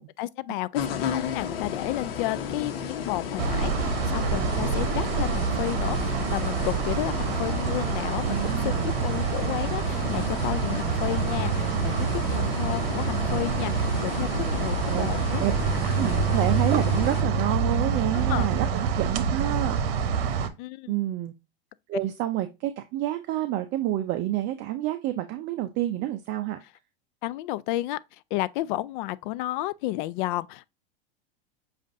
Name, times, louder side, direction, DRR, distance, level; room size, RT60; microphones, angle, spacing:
voice 1, 0.2-15.4 18.1-18.5 20.6-21.0 27.2-28.0 28.3-30.7, left 16 dB, 55° left, 0.4 m, -32 dB
sound 1, 0.7-17.2, left 7 dB, 70° left, 1.0 m, -34 dB
sound 2, 3.4-20.5, right 6 dB, 70° right, 0.9 m, -26 dB
voice 2, 8.3-8.9 14.9-15.1 15.4-15.5 15.8-19.8 20.9-21.3 21.9-26.6, right 13 dB, 40° right, 0.5 m, -29 dB
7.5 x 2.5 x 2.6 m
hypercardioid pair, 105°, 30 cm